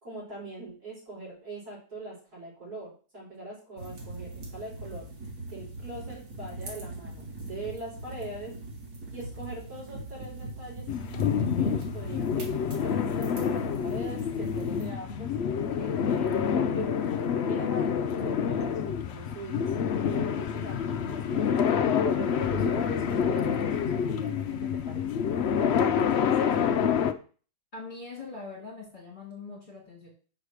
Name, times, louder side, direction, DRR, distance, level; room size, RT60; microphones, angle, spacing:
voice 1, 0.0-5.1 5.5-8.6 9.1-16.9 17.5-21.6 22.0-25.2 25.6-27.1, right 2 dB, 55° right, -5 dB, 4.9 m, -42 dB
sound 1, 3.8-14.9, right 2 dB, 80° right, 2.7 m, -41 dB
sound 2, 10.9-27.1, left 7 dB, 75° left, 0.5 m, -27 dB
voice 2, 27.7-30.1, left 3 dB, 25° left, -4 dB, 2.8 m, -42 dB
6.5 x 4.9 x 6.5 m, 0.39 s
omnidirectional pair, 1.9 m